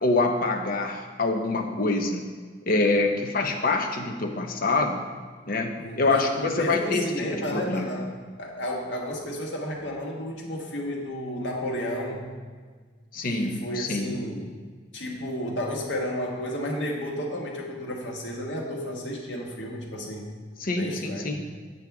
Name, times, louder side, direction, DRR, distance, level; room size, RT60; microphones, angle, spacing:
voice 1, 0.0-2.2 2.7-5.0 5.5-8.1 13.1-14.2 20.6-21.4, left 3 dB, 55° left, 3 dB, 0.9 m, -26 dB
voice 2, 5.8-8.1 8.4-12.3 13.3-14.5 14.9-20.3 20.8-21.3, equal, 85° left, -1 dB, 1.5 m, -32 dB
8.6 x 7.7 x 3.6 m, 1.5 s
head